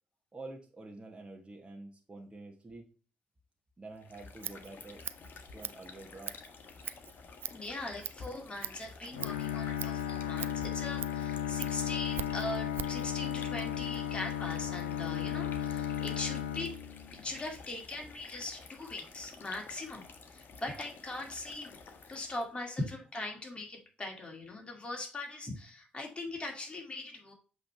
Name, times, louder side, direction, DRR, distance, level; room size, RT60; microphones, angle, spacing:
voice 1, 0.3-2.9 3.8-5.0 5.5-6.4, right 2 dB, 20° right, 1 dB, 1.4 m, -48 dB
sound 1, 3.9-22.6, left 4 dB, 50° left, 1.2 m, -51 dB
Scissors, 4.1-13.1, right 9 dB, 55° right, 0.4 m, -44 dB
voice 2, 7.5-16.8 17.1-21.8 22.1-27.3, left 2 dB, 25° left, 1 dB, 2.2 m, -40 dB
Bowed string instrument, 9.1-17.4, left 9 dB, 80° left, 0.5 m, -35 dB
7.5 x 3.4 x 4.3 m, 0.37 s
hypercardioid pair, 45°, 4 cm